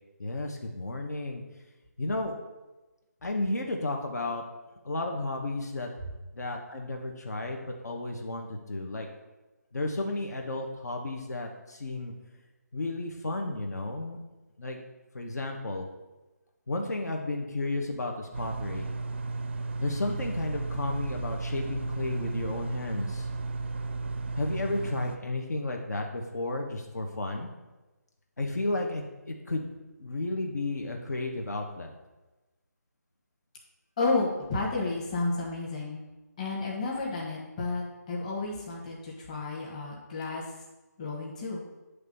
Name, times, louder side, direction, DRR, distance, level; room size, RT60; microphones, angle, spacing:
voice 1, 0.2-1.4 2.0-2.4 3.2-4.4 4.8-5.9 6.3-9.1 9.7-12.1 12.7-14.2 14.6-14.8 15.1-15.9 16.7-18.9 19.8-23.3 24.4-27.5 28.4-29.7 30.0-31.9, left 2 dB, 65° left, 2 dB, 1.2 m, -33 dB
sound 1, 18.3-25.2, right 3 dB, 40° right, 0.5 m, -34 dB
voice 2, 34.0-36.0 36.4-40.4 41.0-41.6, left 3 dB, 25° left, -4 dB, 1.4 m, -31 dB
9.6 x 3.4 x 5.4 m, 1.1 s
figure-of-eight pair, 170°, 10 cm